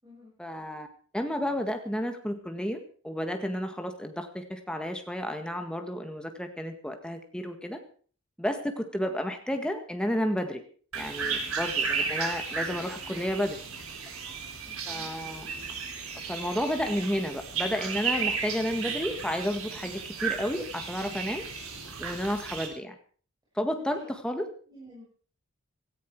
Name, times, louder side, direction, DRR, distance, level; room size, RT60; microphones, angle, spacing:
voice 1, 0.4-0.9 1.1-7.8 8.4-10.6 10.9-13.6 14.9-15.5 16.3-21.4 22.0-23.0 23.6-24.5, equal, 5° left, 5 dB, 1.7 m, -31 dB
sound 1, 10.9-22.7, right 5 dB, 80° right, 3.7 m, -34 dB
voice 2, 11.2-11.5 14.6-15.1 23.7-24.1 24.7-25.0, equal, 15° right, -8 dB, 7.0 m, -51 dB
17.5 x 14.0 x 4.7 m, 0.43 s
head